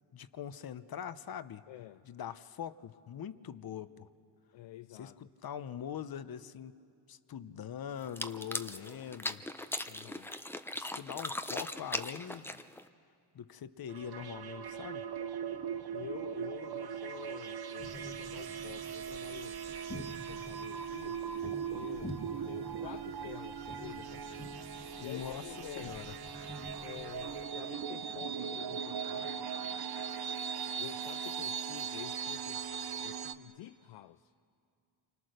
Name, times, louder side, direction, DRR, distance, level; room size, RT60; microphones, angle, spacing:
voice 1, 0.1-1.6 2.1-4.1 4.9-6.7 7.1-9.4 10.8-12.6 13.3-15.0 24.9-25.4 25.8-26.1, left 9 dB, 50° left, 0.9 m, -42 dB
voice 2, 1.7-2.1 4.5-5.2 9.9-10.3 15.9-19.6 20.1-21.3 21.5-24.2 25.0-26.0 26.8-29.8 30.8-32.6 33.0-34.3, left 14 dB, 70° left, 0.6 m, -49 dB
sound 1, 8.0-12.9, left 1 dB, 5° left, 0.7 m, -39 dB
sound 2, 13.9-33.3, right 7 dB, 55° right, 1.0 m, -39 dB
sound 3, 17.8-27.4, left 1 dB, 25° left, 1.7 m, -49 dB
29.5 x 25.0 x 6.6 m
cardioid pair, 85°, 47 cm